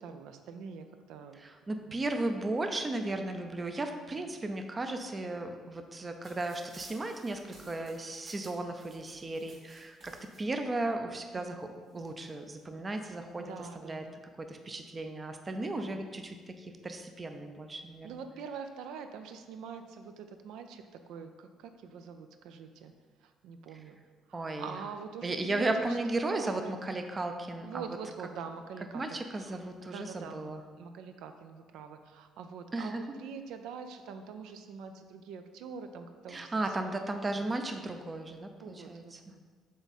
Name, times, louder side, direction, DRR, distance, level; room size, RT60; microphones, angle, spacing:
voice 1, 0.0-1.4 1.8-2.1 11.3-11.6 13.4-14.2 15.6-16.0 18.0-22.9 23.2-24.0 24.3-26.8 27.6-30.5 30.8-36.9 38.6-39.4, right 6 dB, 80° right, 7 dB, 0.5 m, -45 dB
voice 2, 1.3-10.1 10.4-11.7 11.9-14.0 14.4-18.2 24.3-24.7 25.2-28.0 28.9-30.6 32.7-33.2 36.3-39.2, right 2 dB, 20° right, 6 dB, 0.4 m, -35 dB
sound 1, 6.2-10.4 11.3-11.4 11.6-12.6 13.3-13.7, right 2 dB, 40° right, 1.4 m, -56 dB
7.4 x 3.5 x 4.1 m, 1.5 s
cardioid pair, 150°, 0 cm